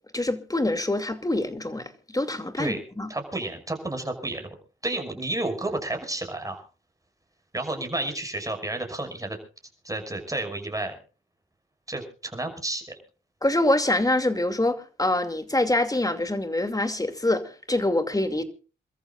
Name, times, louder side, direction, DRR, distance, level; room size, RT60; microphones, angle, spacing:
voice 1, 0.1-3.1 13.4-18.4, left 1 dB, 20° left, 2.5 m, -25 dB
voice 2, 3.1-4.5 4.8-6.6 7.5-9.4 9.8-11.0 11.9-13.0, right 2 dB, 15° right, 6.1 m, -31 dB
28.5 x 14.0 x 2.5 m
cardioid pair, 65°, 20 cm